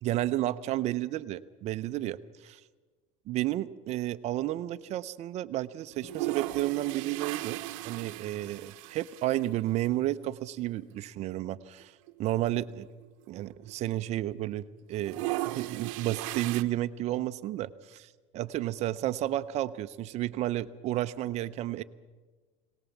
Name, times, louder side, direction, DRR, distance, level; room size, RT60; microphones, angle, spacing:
voice 1, 0.0-2.6 3.3-7.6 7.8-11.9 12.2-12.9 13.3-21.8, right 14 dB, 40° right, 13 dB, 0.6 m, -32 dB
sound 1, 5.9-9.5 9.8-9.9 10.1-10.2 11.2-11.4 11.8-11.9 12.1-14.0 14.2-14.6 14.9-16.6, right 18 dB, 80° right, 0.9 m, -37 dB
sound 2, 6.0-9.5, right 3 dB, 65° left, 4.8 m, -55 dB
22.0 x 19.0 x 7.2 m, 1.3 s
cardioid pair, 150°, 16 cm